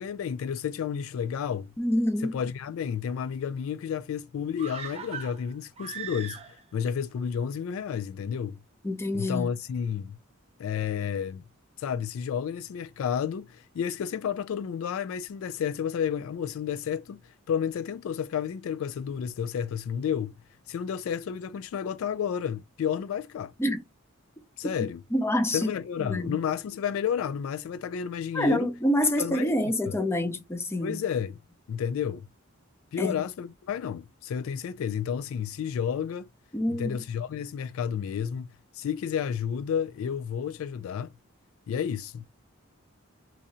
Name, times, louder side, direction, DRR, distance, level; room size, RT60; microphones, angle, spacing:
voice 1, 0.0-1.7 2.2-8.6 9.1-10.2 10.6-11.4 11.8-20.3 20.7-23.5 24.6-25.0 25.5-28.7 29.2-30.0 30.8-31.4 31.7-32.3 32.9-36.3 36.8-38.5 38.7-41.1 41.7-42.3, left 8 dB, 65° left, 0.3 m, -31 dB
voice 2, 1.8-2.3 8.8-9.5 23.6-23.8 25.1-25.7 26.0-26.4 28.3-31.0 33.0-33.2 36.5-37.0, left 1 dB, 10° left, 0.6 m, -27 dB
sound 1, 4.6-6.8 7.1-7.2, right 7 dB, 30° right, 0.6 m, -40 dB
3.0 x 2.7 x 3.6 m
head